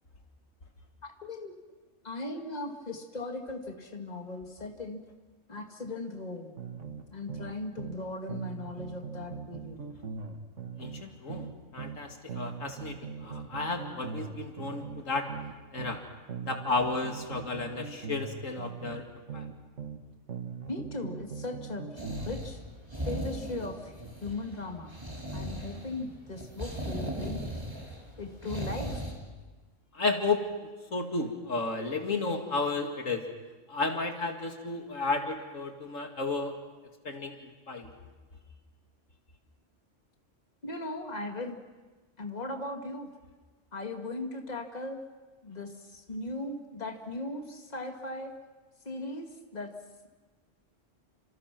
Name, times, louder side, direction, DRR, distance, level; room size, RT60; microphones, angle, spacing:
voice 1, 1.0-1.5 2.0-5.0 5.5-6.6 7.1-9.8 20.7-22.6 23.0-23.9 24.2-24.9 25.3-27.4 28.2-29.0 40.6-41.6 42.2-43.1 43.7-45.0 45.4-48.3 48.9-49.7, left 2 dB, 35° left, 3 dB, 2.3 m, -38 dB
sound 1, 6.6-8.0 8.3-12.0 12.3-16.0 16.3-20.0 20.3-22.4, right 5 dB, 70° right, 2.1 m, -40 dB
voice 2, 10.8-15.3 15.7-16.0 16.4-19.0 19.3-19.5 29.9-30.5 30.9-33.3 33.7-36.5 37.0-37.4 37.7-37.9, left 3 dB, 80° left, 4 dB, 2.8 m, -32 dB
sound 2, 22.0-29.1, equal, 20° right, 4.7 m, -38 dB
30.0 x 27.5 x 6.1 m, 1.3 s
omnidirectional pair, 1.3 m